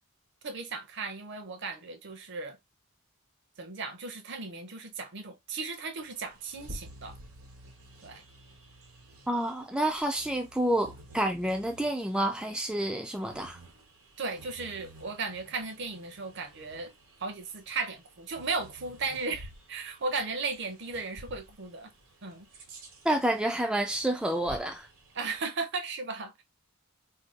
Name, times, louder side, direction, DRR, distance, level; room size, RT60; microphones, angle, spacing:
voice 1, 0.4-2.6 3.6-7.2 8.0-8.2 14.2-16.9 17.2-21.9 22.2-22.5 25.1-26.4, right 4 dB, 55° right, 0.7 m, -36 dB
Bird vocalization bird call bird song, 6.0-25.4, right 1 dB, 85° right, 1.2 m, -52 dB
voice 2, 9.3-10.9 11.1-13.6 23.0-24.9, right 1 dB, 5° right, 0.3 m, -29 dB
2.7 x 2.3 x 3.6 m
head